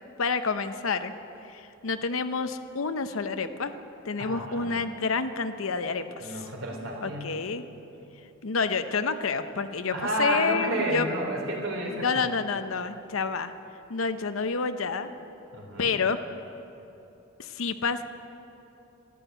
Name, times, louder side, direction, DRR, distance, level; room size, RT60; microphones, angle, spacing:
voice 1, 0.2-1.1 1.5-3.7 4.1-6.5 7.0-7.6 8.4-11.1 12.0-13.5 13.9-15.1 15.8-16.2 17.4-18.1, left 5 dB, 85° left, 10 dB, 0.7 m, -29 dB
voice 2, 4.2-4.7 6.2-7.3 9.9-12.2 15.5-16.0, right 1 dB, 80° right, 0 dB, 3.2 m, -31 dB
13.0 x 12.0 x 7.9 m, 2.9 s
head